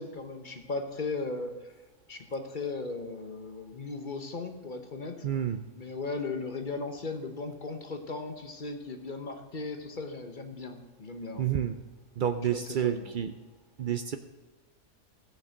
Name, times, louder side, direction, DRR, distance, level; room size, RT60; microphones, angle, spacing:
voice 1, 0.0-1.5 2.1-5.2 5.8-11.5 12.5-13.1, left 3 dB, 40° left, 6 dB, 1.0 m, -37 dB
voice 2, 5.2-5.6 11.4-11.8 12.2-13.3 13.8-14.2, right 9 dB, 90° right, 9 dB, 0.4 m, -29 dB
15.0 x 6.5 x 6.4 m, 1.2 s
omnidirectional pair, 1.5 m